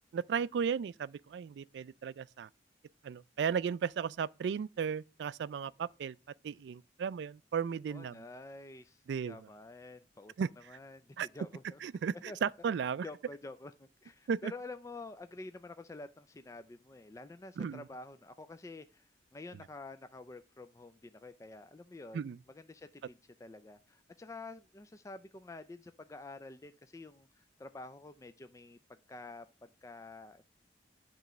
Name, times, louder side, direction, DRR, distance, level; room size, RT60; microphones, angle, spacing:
voice 1, 0.1-2.5 3.0-6.2 6.4-8.2 9.1-9.4 10.4-10.5 11.2-11.3 11.8-13.0 14.3-14.5 17.6-17.8 22.1-22.4, right 7 dB, 70° right, 0.3 m, -35 dB
voice 2, 7.9-10.3 10.7-11.8 12.3-12.5 13.0-22.2 22.5-30.5, left 2 dB, 15° left, 0.3 m, -49 dB
9.1 x 3.1 x 5.9 m
head